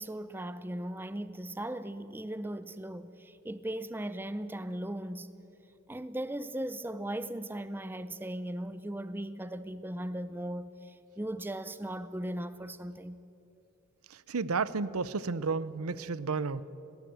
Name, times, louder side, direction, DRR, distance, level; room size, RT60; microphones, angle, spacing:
voice 1, 0.0-5.3 5.9-13.2, right 1 dB, 10° right, 0.5 m, -38 dB
voice 2, 14.3-16.6, right 4 dB, 90° right, 0.7 m, -32 dB
21.0 x 17.5 x 9.2 m
head